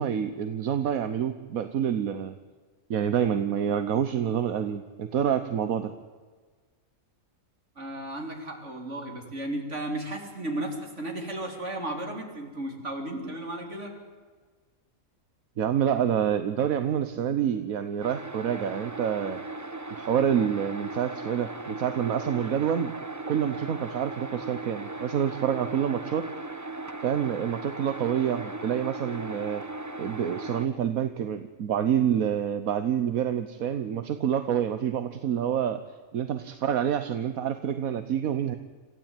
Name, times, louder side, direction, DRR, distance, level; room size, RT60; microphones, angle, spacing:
voice 1, 0.0-2.4 2.9-5.9 15.6-19.4 19.9-22.9 23.3-26.3 27.0-29.6 30.0-35.8 36.1-38.6, right 9 dB, 80° right, 9 dB, 1.4 m, -27 dB
voice 2, 7.8-14.0, right 1 dB, 55° right, 2 dB, 3.9 m, -34 dB
sound 1, 18.0-30.7, right 2 dB, 15° right, 1.0 m, -38 dB
27.5 x 15.0 x 9.0 m, 1.5 s
omnidirectional pair, 1.4 m